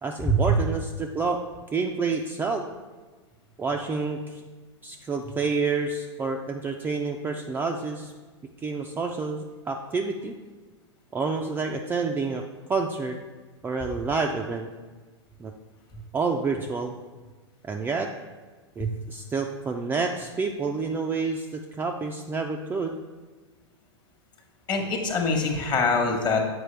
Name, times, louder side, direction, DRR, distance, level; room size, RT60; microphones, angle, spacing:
voice 1, 0.0-1.4 1.7-2.6 3.6-4.3 4.8-8.1 8.6-10.3 11.1-12.4 12.7-13.2 13.6-14.7 15.4-15.5 16.1-16.9 17.6-18.1 18.8-23.0, right 4 dB, 15° right, 2 dB, 0.3 m, -28 dB
voice 2, 24.7-26.4, left 2 dB, 30° left, 3 dB, 1.1 m, -24 dB
7.6 x 4.7 x 3.3 m, 1.3 s
hypercardioid pair, 105°, 15 cm